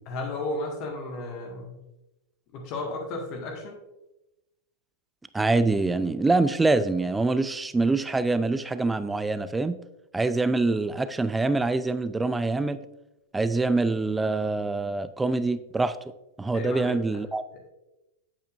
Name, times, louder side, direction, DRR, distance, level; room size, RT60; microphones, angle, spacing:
voice 1, 0.1-1.8 2.5-3.8 16.5-17.0 17.5-17.7, left 2 dB, 40° left, 1 dB, 1.8 m, -34 dB
voice 2, 5.3-9.8 10.1-12.8 13.3-16.0 16.4-17.4, right 3 dB, 10° right, 14 dB, 0.4 m, -25 dB
8.6 x 8.4 x 2.6 m, 0.95 s
figure-of-eight pair, 90°, 0 cm